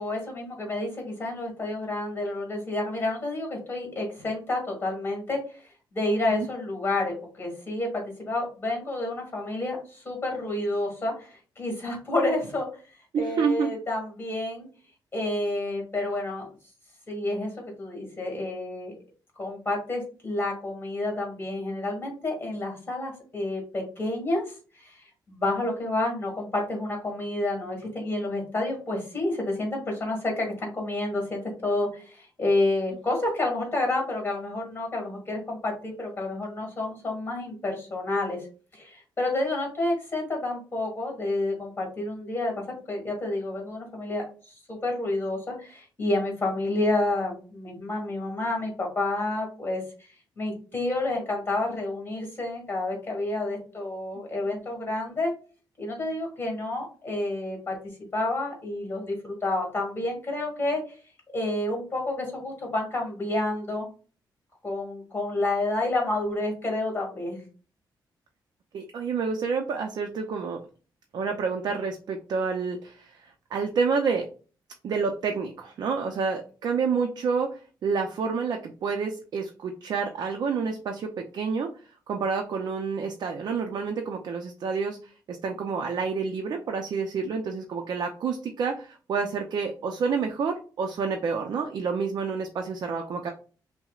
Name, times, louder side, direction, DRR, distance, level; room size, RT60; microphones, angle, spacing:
voice 1, 0.0-5.6 5.9-12.7 13.2-14.7 15.1-16.5 17.1-17.5 17.8-18.9 19.4-38.5 38.7-49.8 50.3-55.3 55.8-57.7 58.1-60.8 61.3-63.9 64.6-67.4, left 2 dB, 25° left, 1 dB, 1.7 m, -29 dB
voice 2, 13.1-13.8 68.7-70.6 71.1-74.3 74.8-81.7 82.1-93.3, right 5 dB, 55° right, 3 dB, 0.5 m, -29 dB
5.7 x 2.1 x 2.3 m, 0.37 s
wide cardioid pair, 150°, 8 cm